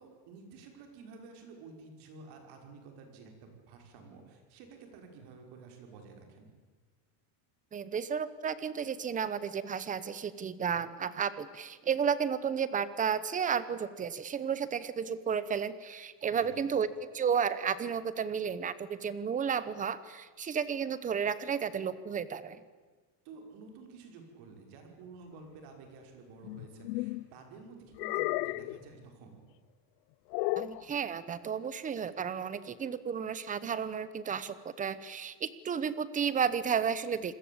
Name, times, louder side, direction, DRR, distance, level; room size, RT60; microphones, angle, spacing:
voice 1, 0.0-6.5 16.2-16.7 23.2-29.4, right 4 dB, 55° right, 4 dB, 5.7 m, -51 dB
voice 2, 7.7-16.9 17.1-22.6 30.6-37.3, right 7 dB, 15° right, 15 dB, 0.8 m, -32 dB
sound 1, 26.4-27.3 28.0-28.8 30.3-30.8, left 21 dB, 90° left, 0.8 m, -33 dB
28.0 x 21.0 x 8.7 m, 1.4 s
cardioid pair, 180°, 48 cm